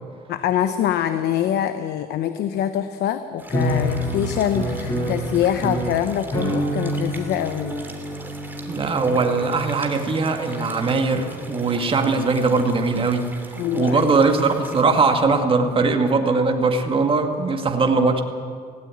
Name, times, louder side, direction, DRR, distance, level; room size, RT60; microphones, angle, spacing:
voice 1, 0.3-7.8 13.6-14.1, left 10 dB, 75° left, 10 dB, 1.0 m, -24 dB
sound 1, 3.4-14.8, right 2 dB, 10° right, 2.8 m, -42 dB
sound 2, 3.5-11.8, equal, 15° left, 7.8 m, -28 dB
voice 2, 8.7-13.3 13.7-18.2, right 4 dB, 30° right, 4 dB, 2.1 m, -20 dB
17.0 x 17.0 x 9.8 m, 2.1 s
cardioid pair, 110°, 17 cm